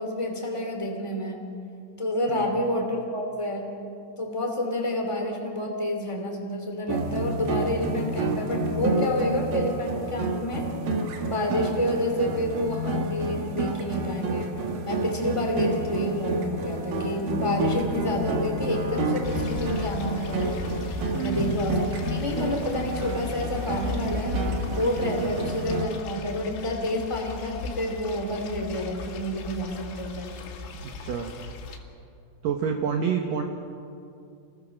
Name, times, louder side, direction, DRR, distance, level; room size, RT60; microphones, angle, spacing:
voice 1, 0.0-1.4 2.0-3.7 4.2-10.7 11.3-14.5 14.8-20.7 21.2-21.8 22.1-24.3 24.7-30.4, left 1 dB, 10° left, 2 dB, 1.3 m, -29 dB
voice 2, 2.3-2.6 21.1-21.5 25.2-25.4 30.8-31.3 32.4-33.4, right 7 dB, 80° right, 3 dB, 1.9 m, -28 dB
sound 1, 6.9-25.8, right 2 dB, 60° right, 2.7 m, -29 dB
sound 2, 19.2-31.8, left 4 dB, 75° left, 4.5 m, -36 dB
28.0 x 20.5 x 6.5 m, 2.5 s
omnidirectional pair, 5.8 m